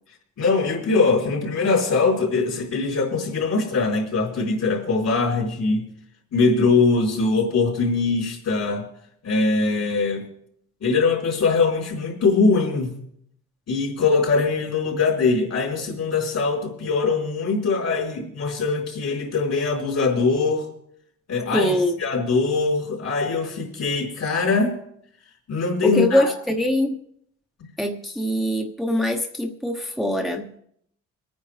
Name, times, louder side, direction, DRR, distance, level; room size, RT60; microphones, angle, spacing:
voice 1, 0.4-5.8 6.3-8.8 9.2-10.2 10.8-13.0 13.7-20.6 21.3-24.8 25.5-26.3, left 4 dB, 60° left, -1 dB, 4.2 m, -22 dB
voice 2, 21.5-22.0 25.8-27.0 27.8-30.5, left 1 dB, ahead, 2 dB, 1.0 m, -23 dB
24.0 x 9.5 x 3.4 m, 0.70 s
cardioid pair, 90°, 30 cm